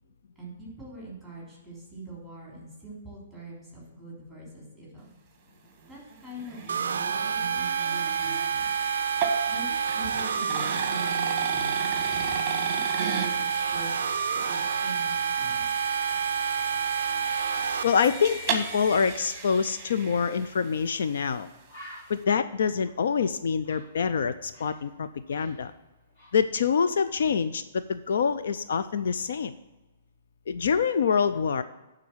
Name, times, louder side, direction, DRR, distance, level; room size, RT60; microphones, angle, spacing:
voice 1, 0.3-5.1 5.9-8.7 9.5-13.9 14.3-15.8, right 2 dB, 5° left, -5 dB, 3.2 m, -42 dB
sound 1, 5.7-20.9, right 4 dB, 20° right, 1.1 m, -36 dB
sound 2, 6.7-17.8, right 7 dB, 85° right, 0.3 m, -28 dB
voice 2, 17.8-21.5 22.1-25.7 26.3-29.5 30.5-31.6, left 6 dB, 70° left, 11 dB, 0.4 m, -26 dB
Bird, 20.8-21.0 21.3-21.4 21.7-24.9 25.1-26.8 27.1-27.4, equal, 35° left, 2.9 m, -50 dB
9.3 x 3.8 x 7.2 m, 1.1 s
hypercardioid pair, 160°, 0 cm